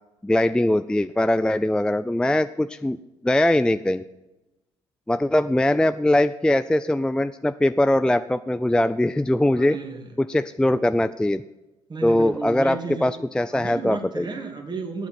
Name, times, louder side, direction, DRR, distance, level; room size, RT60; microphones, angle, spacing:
voice 1, 0.2-3.0 3.2-4.0 5.1-9.8 10.2-11.4 12.0-14.4, left 1 dB, 5° left, 13 dB, 0.4 m, -21 dB
voice 2, 9.5-10.1 11.9-13.1 13.5-15.1, right 4 dB, 35° right, 3 dB, 2.8 m, -33 dB
12.0 x 8.3 x 7.6 m, 1.0 s
hypercardioid pair, 60°, 13 cm